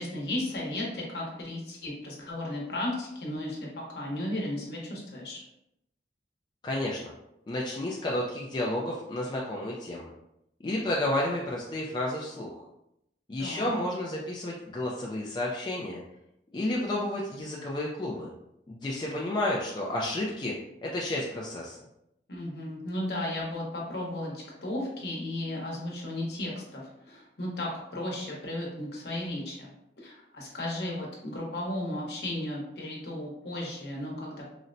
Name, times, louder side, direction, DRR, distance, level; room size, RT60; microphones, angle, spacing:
voice 1, 0.0-5.4 13.4-13.7 22.3-29.7 30.0-34.5, left 1 dB, 65° left, -3 dB, 0.9 m, -35 dB
voice 2, 6.6-7.1 7.5-10.1 10.6-12.6 13.3-16.0 16.5-18.3 18.7-20.5 20.8-21.8, left 1 dB, 25° left, -3 dB, 0.3 m, -31 dB
3.9 x 2.1 x 2.5 m, 0.82 s
head